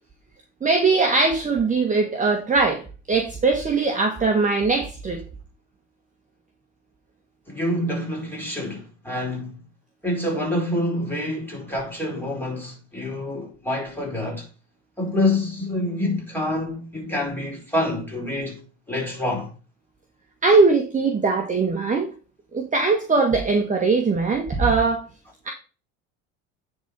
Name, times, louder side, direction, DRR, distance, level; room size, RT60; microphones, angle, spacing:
voice 1, 0.6-2.8 3.1-5.2 20.4-22.1 22.5-25.0 25.4-25.5, right 4 dB, 20° right, 1.7 m, -20 dB
voice 2, 7.5-9.6 10.0-14.5 15.0-18.6 18.9-19.5, left 1 dB, 5° left, 4.8 m, -27 dB
9.4 x 4.3 x 5.3 m
hypercardioid pair, 85°, 38 cm